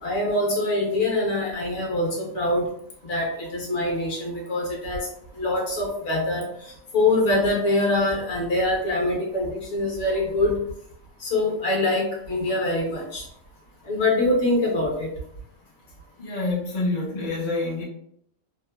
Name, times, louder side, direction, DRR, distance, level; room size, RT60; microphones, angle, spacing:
voice 1, 0.0-2.7 3.0-5.1 5.3-10.6 11.2-13.3 13.8-15.1, left 2 dB, 60° left, -2 dB, 1.1 m, -24 dB
voice 2, 16.2-17.8, left 2 dB, 45° left, -4 dB, 0.5 m, -27 dB
2.9 x 2.1 x 2.2 m, 0.70 s
omnidirectional pair, 1.4 m